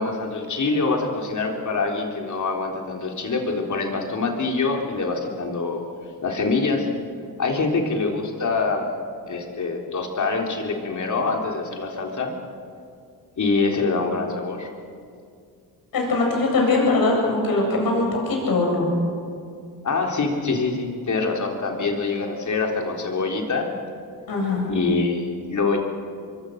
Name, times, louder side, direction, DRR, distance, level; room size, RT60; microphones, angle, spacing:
voice 1, 0.0-5.8 6.2-6.9 7.4-8.9 9.3-12.3 13.4-14.7 19.8-23.7 24.7-25.8, left 3 dB, 50° left, 1 dB, 3.7 m, -25 dB
voice 2, 15.9-18.9 24.3-24.7, left 3 dB, 70° left, 0 dB, 8.0 m, -21 dB
25.0 x 23.0 x 6.6 m, 2.3 s
cardioid pair, 80°, 37 cm